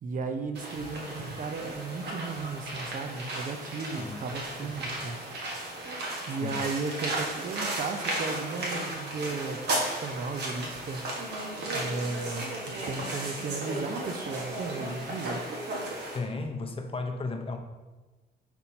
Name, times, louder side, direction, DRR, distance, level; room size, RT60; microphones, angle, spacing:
voice 1, 0.0-5.2 5.6-5.7 6.3-11.1 11.7-15.4, right 4 dB, 50° right, 6 dB, 0.6 m, -35 dB
sound 1, 0.5-16.2, right 1 dB, 75° right, 1.4 m, -35 dB
voice 2, 3.9-4.2 6.4-6.7 16.1-17.6, left 3 dB, 30° left, 5 dB, 0.6 m, -34 dB
4.4 x 4.2 x 5.3 m, 1.2 s
cardioid pair, 115°, 18 cm